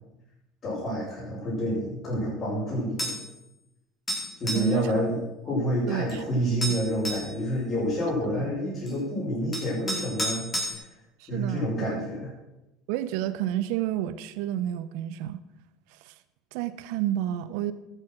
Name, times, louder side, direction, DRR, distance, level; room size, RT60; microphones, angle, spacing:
voice 1, 0.6-3.1 4.4-10.5 10.7-10.9 11.3-12.3, equal, 40° left, 6.1 m, -28 dB
sound 1, 3.0-3.3 4.1-4.7 6.1-6.2 6.6-7.3 8.9-9.0 9.5-10.7, equal, 25° left, 4.3 m, -31 dB
voice 2, 4.5-5.0 5.9-6.2 8.2-8.5 11.2-12.0 12.9-15.4 15.9-16.1 16.5-17.7, right 12 dB, 65° right, 0.6 m, -30 dB
13.0 x 9.0 x 6.2 m
hypercardioid pair, 70°, 0 cm